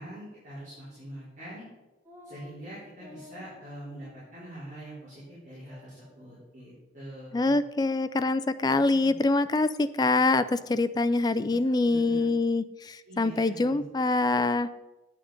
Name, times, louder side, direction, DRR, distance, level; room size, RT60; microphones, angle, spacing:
voice 1, 0.0-1.7 2.2-7.5 8.6-9.2 11.4-12.3 13.1-14.1, right 1 dB, 45° right, -12 dB, 4.3 m, -44 dB
sound 1, 2.0-2.6 3.0-4.2 4.5-4.6 5.0-5.4 5.6-6.5, left 2 dB, 10° right, 1.2 m, -52 dB
voice 2, 7.3-14.7, left 3 dB, 20° left, 13 dB, 0.3 m, -25 dB
10.0 x 7.6 x 5.1 m, 1.1 s
head